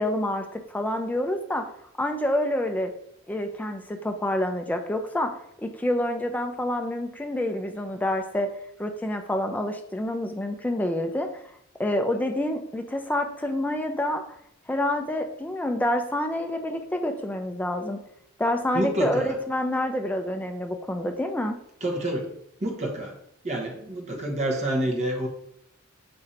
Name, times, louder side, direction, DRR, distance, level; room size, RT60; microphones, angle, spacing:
voice 1, 0.0-1.7 2.0-2.9 3.3-8.5 8.8-11.3 11.8-14.2 14.7-18.0 18.4-21.6, left 1 dB, 10° left, 4 dB, 0.3 m, -27 dB
voice 2, 18.7-19.3 21.8-22.3 22.6-23.2 23.4-25.3, right 1 dB, 35° right, 1 dB, 0.7 m, -28 dB
3.1 x 2.6 x 3.9 m, 0.72 s
head